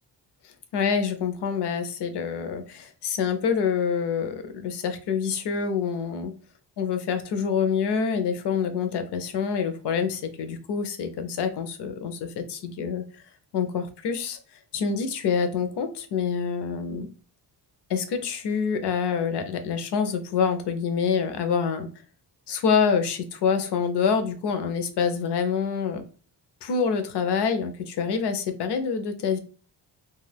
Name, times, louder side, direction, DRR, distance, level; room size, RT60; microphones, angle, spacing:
voice 1, 0.4-6.3 6.8-13.2 13.5-14.4 14.7-17.1 17.9-21.9 22.5-26.0 26.6-29.4, left 6 dB, 70° left, 8 dB, 0.6 m, -26 dB
2.3 x 2.2 x 3.3 m, 0.39 s
wide cardioid pair, 170°, 43 cm